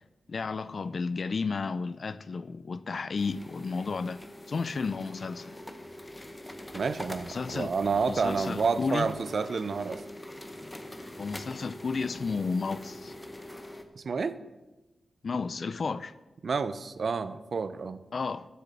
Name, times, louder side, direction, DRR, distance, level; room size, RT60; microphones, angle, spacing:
voice 1, 0.3-4.2 4.5-5.6 7.3-7.7 8.1-9.1 11.2-13.2 15.2-16.1 18.1-18.5, left 4 dB, 45° left, 0.3 m, -32 dB
sound 1, 3.2-13.8, left 1 dB, 10° left, 0.8 m, -44 dB
voice 2, 6.7-10.0 14.0-14.4 16.4-18.0, right 5 dB, 50° right, 0.5 m, -29 dB
7.7 x 6.7 x 7.3 m
wide cardioid pair, 150°, 0 cm